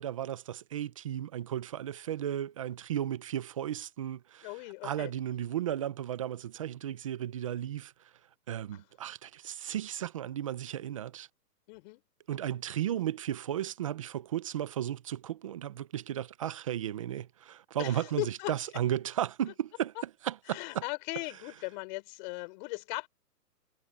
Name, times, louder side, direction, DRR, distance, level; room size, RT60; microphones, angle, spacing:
voice 1, 0.0-4.5 4.8-7.9 8.5-11.3 12.3-20.8, right 11 dB, 20° right, 0.7 m, -34 dB
voice 2, 4.4-5.1 8.7-8.8 11.7-12.0 17.8-18.5 20.5-23.1, left 27 dB, 30° left, 5.8 m, -38 dB
hypercardioid pair, 155°, 48 cm